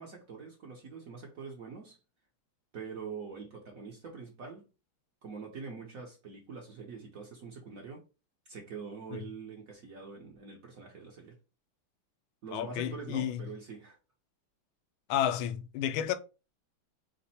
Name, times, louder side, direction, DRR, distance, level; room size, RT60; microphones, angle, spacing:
voice 1, 0.0-2.0 2.7-4.7 5.2-8.0 8.5-11.4 12.4-14.0, right 5 dB, 60° right, 0.9 m, -44 dB
voice 2, 12.5-13.4 15.1-16.1, left 10 dB, 80° left, 1.4 m, -31 dB
5.1 x 2.1 x 4.1 m
omnidirectional pair, 2.3 m